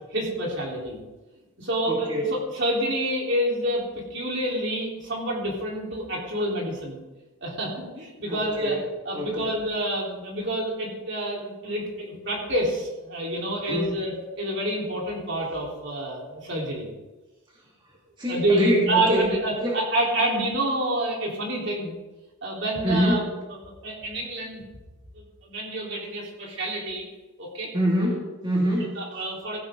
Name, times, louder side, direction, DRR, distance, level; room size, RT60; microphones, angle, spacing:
voice 1, 0.1-1.0 1.6-3.9 4.1-7.0 7.4-8.8 9.0-16.9 18.3-22.0 22.4-23.2 23.8-24.6 25.1-27.0 27.4-27.7 28.8-29.6, right 1 dB, 55° right, -2 dB, 4.2 m, -28 dB
voice 2, 1.9-2.2 8.3-8.8 9.1-9.5 13.6-13.9 18.2-19.3 19.6-19.8 22.8-23.2 27.7-28.9, equal, 20° right, -4 dB, 2.5 m, -25 dB
16.0 x 15.5 x 3.9 m, 1.1 s
head